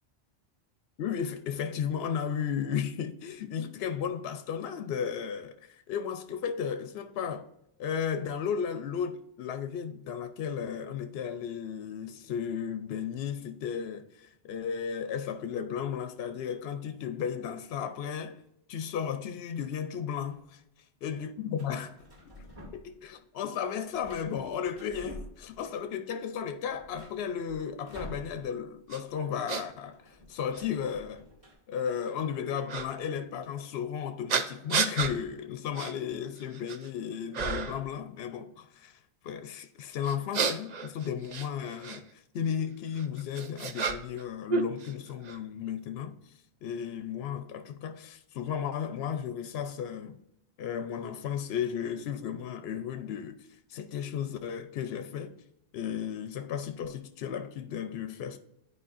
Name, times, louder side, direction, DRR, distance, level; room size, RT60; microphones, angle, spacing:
voice 1, 1.0-7.5 7.8-18.4 18.7-20.6 21.0-22.0 22.3-22.5 22.7-31.2 31.7-46.3 46.6-50.2 50.6-55.4 55.7-58.4, left 8 dB, 70° left, 0.8 m, -34 dB
sound 1, 19.6-20.4 21.6-23.0 23.3-25.8 26.2-26.3 26.5-28.8 29.0-29.2 29.4-31.5, left 1 dB, 30° right, 2.4 m, -49 dB
sound 2, 28.9-29.0 29.5-29.6 30.5-30.6 32.7-32.9 34.3-35.1 35.7-35.9 36.4-36.9 37.3-37.8 40.0-42.0 42.9-44.2 44.5-45.4, right 5 dB, 50° right, 0.6 m, -31 dB
11.0 x 4.7 x 2.5 m
omnidirectional pair, 1.1 m